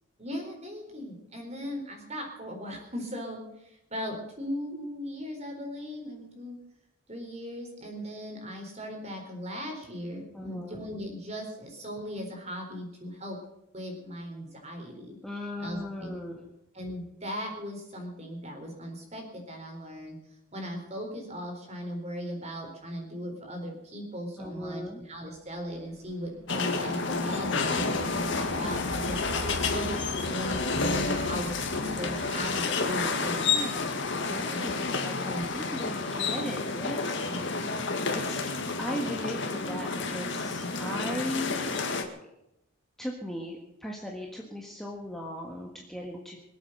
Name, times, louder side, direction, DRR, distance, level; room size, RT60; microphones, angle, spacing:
voice 1, 0.2-6.6 7.1-13.4 13.7-15.2 15.6-16.1 16.7-20.2 20.5-29.2 29.7-33.6 34.5-34.7 35.3-35.5 37.2-37.4, equal, 30° right, 2 dB, 4.2 m, -38 dB
voice 2, 10.3-10.8 15.2-16.5 24.4-25.0 29.2-29.9 32.5-33.0 33.3-37.2 38.2-38.4 38.8-41.7 43.0-46.4, equal, ahead, -1 dB, 1.5 m, -38 dB
sound 1, 25.6-34.6, right 1 dB, 80° right, 1.2 m, -42 dB
sound 2, 26.5-42.0, left 4 dB, 55° left, 2.0 m, -30 dB
23.5 x 8.4 x 6.7 m, 0.84 s
head